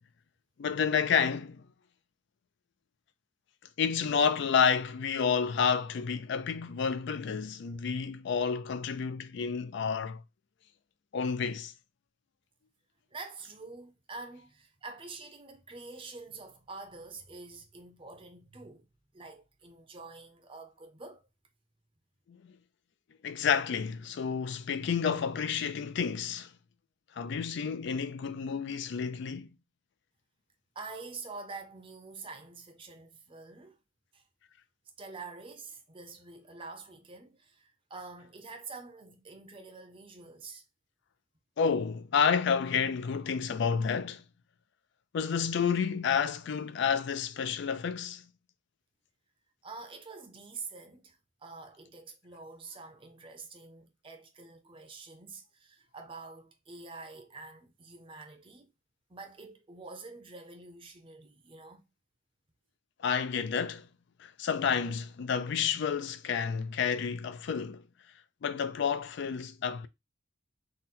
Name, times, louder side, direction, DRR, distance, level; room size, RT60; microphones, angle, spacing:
voice 1, 0.6-1.6 3.8-10.2 11.1-11.7 23.2-26.5 27.2-29.5 41.6-44.2 45.1-48.2 63.0-63.9 64.2-67.8 68.4-69.9, left 6 dB, 60° left, 0.4 m, -30 dB
voice 2, 13.1-18.9 19.1-21.3 30.7-33.8 34.1-34.2 35.0-40.6 49.6-58.7 59.1-61.8, right 3 dB, 25° right, 0.6 m, -46 dB
3.7 x 2.1 x 4.2 m
head